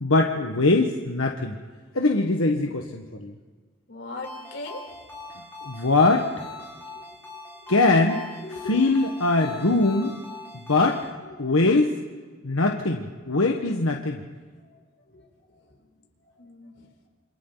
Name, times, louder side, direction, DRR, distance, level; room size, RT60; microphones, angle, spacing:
voice 1, 0.0-1.6 1.9-3.3 5.6-6.3 7.7-8.2 8.6-10.1 10.5-11.0 11.4-11.9 12.4-14.2, left 2 dB, 85° left, 2 dB, 1.5 m, -22 dB
voice 2, 3.9-4.8 8.4-8.8 14.7-14.8 15.1-15.2 16.4-16.9, left 2 dB, 60° left, 1 dB, 4.4 m, -38 dB
Ringtone, 4.2-11.1, left 2 dB, 10° left, 5.9 m, -42 dB
28.5 x 27.0 x 4.0 m, 1.4 s
head